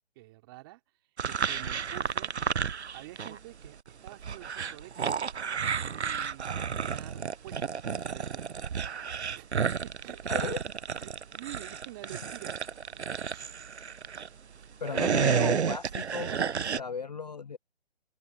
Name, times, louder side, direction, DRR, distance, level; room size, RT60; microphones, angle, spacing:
voice 1, 0.1-0.8 1.3-2.3 2.9-5.6 5.9-8.6 9.3-10.6 11.0-12.6 12.9-13.5 14.6-14.7, right 19 dB, 20° right, 3.1 m, -48 dB
sound 1, 1.2-3.4 3.6-14.3 14.7-16.8, right 6 dB, 75° right, 1.0 m, -31 dB
voice 2, 10.3-10.6 14.8-16.4 16.6-17.6, left 5 dB, 40° left, 0.5 m, -36 dB
open air
hypercardioid pair, 160°, 34 cm